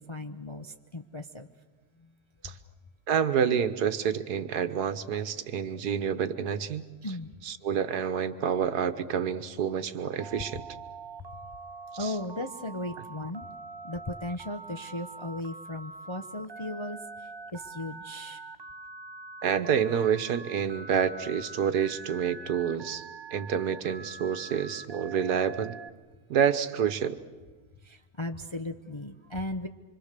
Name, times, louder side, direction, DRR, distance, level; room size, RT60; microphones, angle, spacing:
voice 1, 0.0-1.5 2.0-2.1 2.4-2.5 7.0-7.3 12.0-13.5 13.8-18.4 27.8-29.7, left 1 dB, 30° left, 6 dB, 0.6 m, -37 dB
voice 2, 3.1-6.9 7.4-10.6 12.0-12.1 19.4-25.8 26.3-27.2, right 8 dB, 80° right, 10 dB, 1.6 m, -28 dB
Telephone, 10.2-25.9, right 3 dB, 40° right, 0.3 m, -44 dB
26.0 x 25.5 x 6.7 m, 1.3 s
omnidirectional pair, 1.6 m